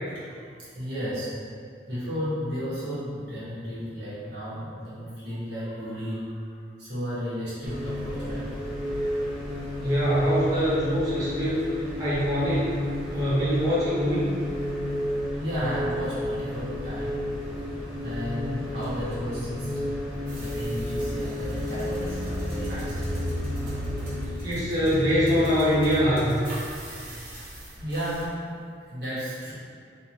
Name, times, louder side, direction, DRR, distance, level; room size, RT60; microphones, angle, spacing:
voice 1, 0.1-1.4 1.9-8.6 15.0-17.2 18.0-23.2 27.4-27.5 27.8-28.6 28.9-29.5, equal, 85° right, -11 dB, 1.4 m, -34 dB
sound 1, 7.6-24.3, left 1 dB, 5° right, 0.6 m, -32 dB
voice 2, 9.8-11.7 12.0-12.8 13.1-14.3 24.4-26.5, equal, 20° right, -12 dB, 1.0 m, -24 dB
sound 2, 20.3-28.2, equal, 50° right, 0.9 m, -35 dB
3.5 x 2.9 x 2.8 m, 2.2 s
head